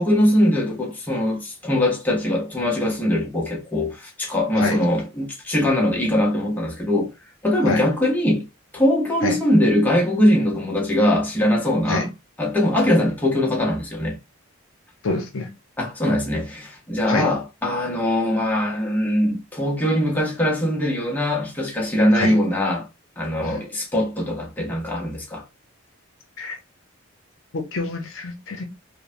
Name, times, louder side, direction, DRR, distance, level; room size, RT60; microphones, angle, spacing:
voice 1, 0.0-7.1 7.4-8.4 8.7-12.1 12.4-14.2 15.8-22.9 23.2-25.4, left 1 dB, 10° left, 0.7 m, -21 dB
voice 2, 15.0-15.5 17.1-17.3 22.1-22.4 23.4-23.6 26.4-26.6 27.5-28.6, left 3 dB, 65° left, 0.6 m, -26 dB
3.2 x 2.1 x 2.5 m
head